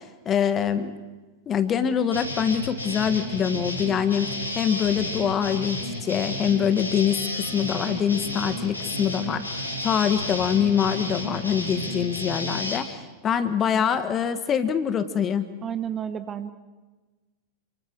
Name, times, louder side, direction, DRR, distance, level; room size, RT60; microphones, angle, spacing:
voice 1, 0.2-1.0 1.5-9.4 9.8-15.5, left 8 dB, 25° left, 11 dB, 1.5 m, -24 dB
sound 1, 2.1-12.8, left 1 dB, 90° left, 4.8 m, -32 dB
voice 2, 15.6-16.5, right 8 dB, 25° right, 11 dB, 1.1 m, -31 dB
28.0 x 25.0 x 4.7 m, 1.3 s
figure-of-eight pair, 90°, 0 cm